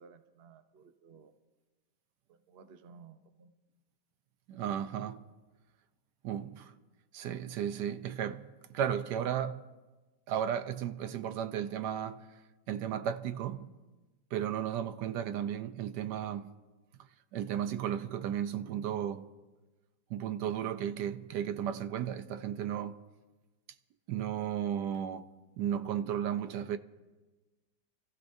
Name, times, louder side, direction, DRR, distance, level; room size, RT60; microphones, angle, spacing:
voice 1, 0.0-1.3 2.3-3.5, right 5 dB, 50° right, 0.7 m, -56 dB
voice 2, 4.5-5.2 6.2-6.7 7.1-9.6 10.3-12.3 12.7-13.7 14.3-16.5 17.3-19.3 20.1-23.0 24.1-25.3 25.6-26.8, right 9 dB, 75° right, 1.2 m, -34 dB
29.0 x 14.5 x 2.7 m
omnidirectional pair, 1.8 m